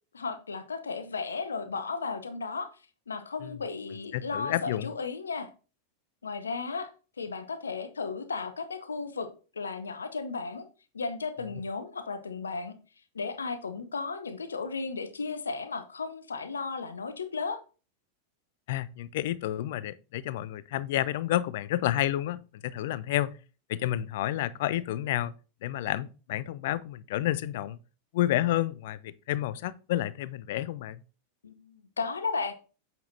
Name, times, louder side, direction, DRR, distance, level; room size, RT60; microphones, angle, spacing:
voice 1, 0.1-2.7 3.1-5.5 6.2-6.9 7.2-9.3 9.5-10.7 10.9-12.8 13.1-17.6 31.4-32.5, left 4 dB, 75° left, 0.8 m, -34 dB
voice 2, 4.1-4.9 18.7-23.3 23.7-25.3 25.6-27.8 28.1-31.0, left 13 dB, 55° left, 0.4 m, -30 dB
8.4 x 6.0 x 2.6 m
figure-of-eight pair, 90°, 0 cm